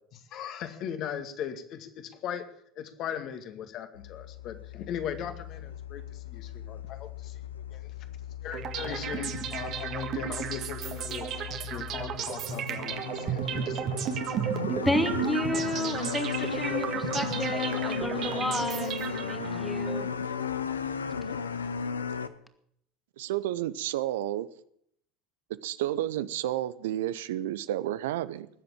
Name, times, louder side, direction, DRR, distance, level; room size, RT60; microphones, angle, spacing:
voice 1, 0.1-2.5 2.8-7.9 8.4-11.3 11.7-14.0, left 8 dB, 50° left, 8 dB, 2.1 m, -38 dB
sound 1, 3.9-22.3, left 6 dB, 90° left, 0.9 m, -36 dB
sound 2, 8.5-19.6, right 8 dB, 50° right, 1.8 m, -33 dB
voice 2, 14.8-18.9 19.3-20.1, left 1 dB, 5° left, 8 dB, 2.4 m, -31 dB
sound 3, 16.6-20.3, right 1 dB, 10° right, 2.1 m, -42 dB
voice 3, 23.2-24.5 25.6-28.5, right 13 dB, 75° right, 16 dB, 0.8 m, -31 dB
20.0 x 7.8 x 8.8 m, 0.70 s
hypercardioid pair, 75°, 0 cm